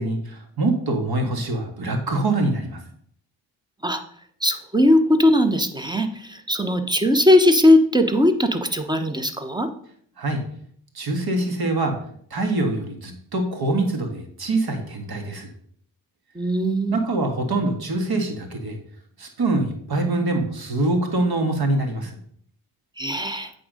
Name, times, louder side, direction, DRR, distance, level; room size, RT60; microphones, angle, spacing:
voice 1, 0.0-2.8 10.2-10.4 11.0-12.0 12.3-15.5 16.9-18.8 19.2-22.2, right 2 dB, 55° right, 4 dB, 1.8 m, -24 dB
voice 2, 4.4-9.7 16.3-17.0 23.0-23.5, left 1 dB, 10° right, 8 dB, 0.9 m, -19 dB
8.5 x 3.7 x 5.2 m, 0.62 s
supercardioid pair, 60°, 45 cm